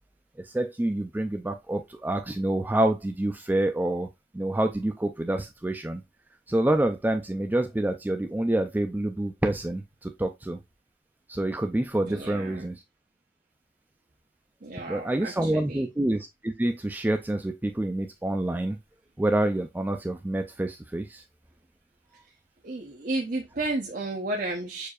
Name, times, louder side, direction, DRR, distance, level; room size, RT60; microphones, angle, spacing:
voice 1, 0.4-4.1 4.3-6.0 6.5-10.6 11.3-12.8 14.9-18.8 19.2-21.2, right 1 dB, 10° right, 0.3 m, -27 dB
voice 2, 12.0-12.7 14.6-15.9 22.6-24.9, right 2 dB, 50° right, 0.8 m, -32 dB
6.6 x 2.7 x 2.3 m
head